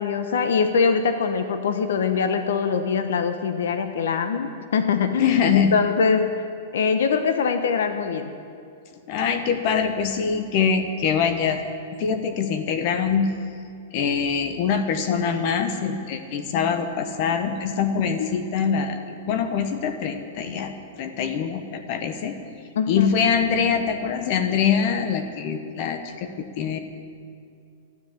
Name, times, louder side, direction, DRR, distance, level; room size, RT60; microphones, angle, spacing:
voice 1, 0.0-6.4 6.7-8.3 18.2-18.3 22.8-23.1, left 5 dB, 80° left, 9 dB, 1.0 m, -23 dB
voice 2, 5.2-5.7 9.1-11.6 11.9-13.3 13.9-19.0 19.3-22.3 22.9-26.8, left 6 dB, 40° left, 8 dB, 1.1 m, -24 dB
12.5 x 10.0 x 8.7 m, 2.3 s
supercardioid pair, 165°, 0 cm